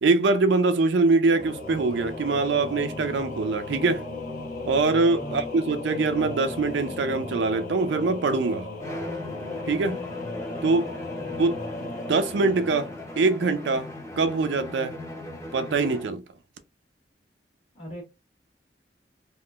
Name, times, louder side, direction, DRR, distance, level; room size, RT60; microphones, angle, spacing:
voice 1, 0.0-4.0 4.6-8.7 9.7-10.0 10.6-10.9 11.4-13.9 14.2-15.0 15.5-16.2, right 3 dB, 70° right, 0.4 m, -23 dB
Singing / Musical instrument, 1.3-13.9, left 2 dB, 50° left, 0.8 m, -36 dB
voice 2, 5.2-5.5 11.0-11.4 17.7-18.0, equal, 35° left, 1.2 m, -41 dB
Bowed string instrument, 8.8-16.2, left 1 dB, 15° left, 0.6 m, -39 dB
3.5 x 2.4 x 2.3 m
head